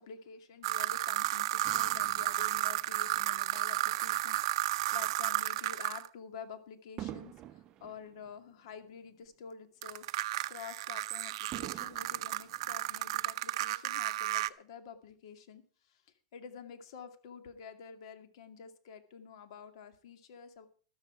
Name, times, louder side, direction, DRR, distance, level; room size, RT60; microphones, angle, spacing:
voice 1, 0.0-10.0 10.5-20.7, left 7 dB, 65° left, 8 dB, 2.4 m, -49 dB
sound 1, 0.6-6.1 9.8-14.5, right 16 dB, 60° right, 0.6 m, -33 dB
Fireworks, 1.6-4.2 4.9-5.1 7.0-9.5 9.9-10.0 11.5-13.4 14.1-14.2, right 13 dB, 30° right, 0.8 m, -48 dB
13.5 x 13.0 x 4.7 m, 0.41 s
supercardioid pair, 150°, 3 cm